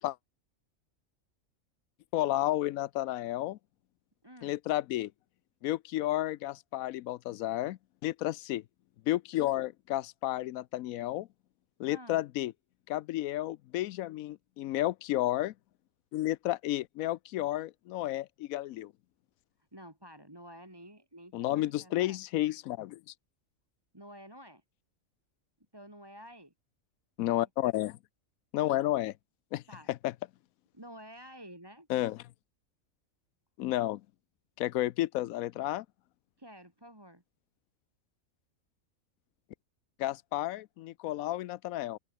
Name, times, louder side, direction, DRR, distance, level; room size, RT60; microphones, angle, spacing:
voice 1, 2.1-3.6 4.4-5.1 5.6-8.6 9.1-11.3 11.8-12.5 12.9-15.5 16.1-18.9 21.3-23.1 27.2-28.0 28.5-29.1 29.5-29.6 30.0-30.1 31.9-32.2 33.6-34.0 34.6-35.9 40.0-42.0, left 15 dB, 85° left, 1.0 m, -32 dB
voice 2, 4.2-4.6 11.9-12.2 19.7-22.2 23.9-24.6 25.7-26.5 27.2-27.5 29.7-29.9 30.7-31.9 36.4-37.2, equal, 15° right, 3.2 m, -50 dB
open air
omnidirectional pair, 1.4 m